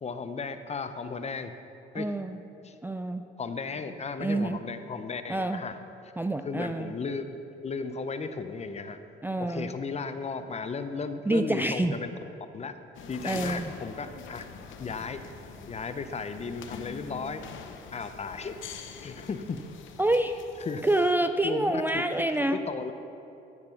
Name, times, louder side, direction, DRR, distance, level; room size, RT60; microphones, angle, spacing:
voice 1, 0.0-1.5 1.9-2.1 2.6-2.8 3.4-5.8 6.4-9.0 9.4-12.1 12.5-12.8 13.1-14.5 14.8-15.2 15.7-17.4 17.9-18.6 19.0-19.6 20.6-20.8 21.4-22.9, left 4 dB, 35° left, 10 dB, 0.6 m, -35 dB
voice 2, 1.9-2.4 2.8-3.2 4.2-4.6 5.3-5.6 6.2-6.9 9.2-9.7 11.3-11.9 13.2-13.7 20.0-20.3 20.8-22.6, right 1 dB, 10° right, 7 dB, 0.4 m, -27 dB
sound 1, 12.9-21.1, left 6 dB, 75° left, 0.7 m, -44 dB
12.0 x 5.9 x 5.7 m, 2.8 s
cardioid pair, 90°, 20 cm